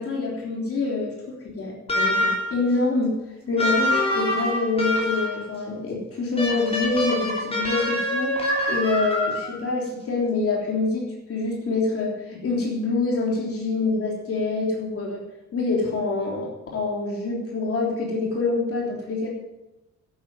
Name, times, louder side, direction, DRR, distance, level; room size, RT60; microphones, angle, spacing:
voice 1, 0.0-3.2 3.5-8.3 8.7-15.2 15.5-19.3, left 3 dB, 50° left, -2 dB, 3.4 m, -26 dB
sound 1, 1.9-2.6 3.6-5.4 6.4-9.6, left 1 dB, 20° left, 3.6 m, -25 dB
11.5 x 9.1 x 7.8 m, 0.99 s
cardioid pair, 130°, 29 cm